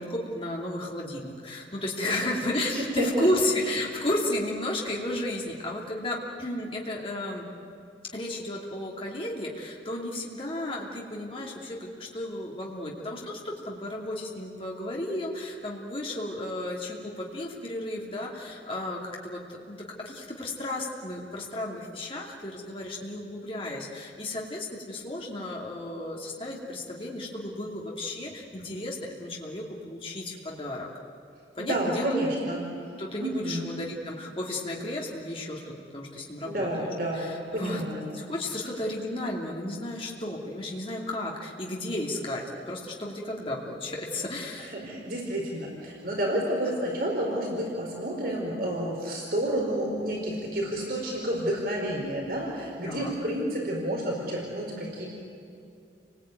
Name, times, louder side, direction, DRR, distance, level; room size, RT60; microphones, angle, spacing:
voice 1, 0.0-7.4 8.1-30.9 31.6-32.2 33.0-37.8 38.1-44.8 52.8-53.1, left 1 dB, 30° left, -2 dB, 2.7 m, -33 dB
voice 2, 2.7-3.3 31.6-32.6 33.2-33.7 36.4-38.0 44.7-55.1, right 1 dB, 55° right, -1 dB, 4.4 m, -30 dB
29.5 x 20.0 x 9.2 m, 2.5 s
head